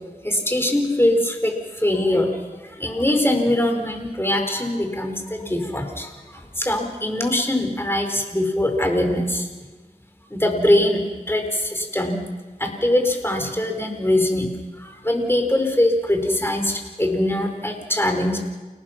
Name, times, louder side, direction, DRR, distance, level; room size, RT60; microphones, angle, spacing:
voice 1, 0.2-9.5 10.3-12.2 12.6-14.5 14.8-18.4, left 1 dB, 15° left, 4 dB, 4.4 m, -22 dB
29.0 x 18.5 x 6.0 m, 1.2 s
wide cardioid pair, 40°, 15 cm